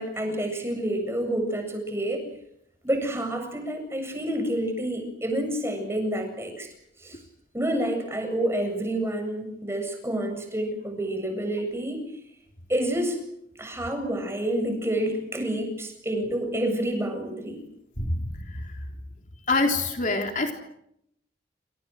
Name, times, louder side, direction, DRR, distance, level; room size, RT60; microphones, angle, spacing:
voice 1, 0.0-2.2 2.8-6.7 7.0-7.2 7.5-12.0 12.7-13.2 13.6-17.6, right 1 dB, 15° right, 5 dB, 7.7 m, -28 dB
voice 2, 18.0-18.3 19.5-20.5, left 3 dB, 45° left, 3 dB, 3.5 m, -24 dB
29.0 x 28.0 x 6.5 m, 0.76 s
head